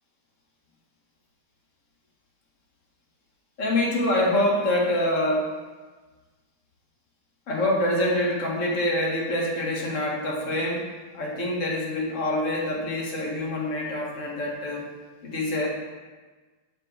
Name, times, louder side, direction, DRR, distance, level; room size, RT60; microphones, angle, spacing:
voice 1, 3.6-5.5 7.5-14.9 15.2-15.7, left 1 dB, 55° left, -3 dB, 1.7 m, -25 dB
7.2 x 2.7 x 4.8 m, 1.3 s
hypercardioid pair, 100°, 0 cm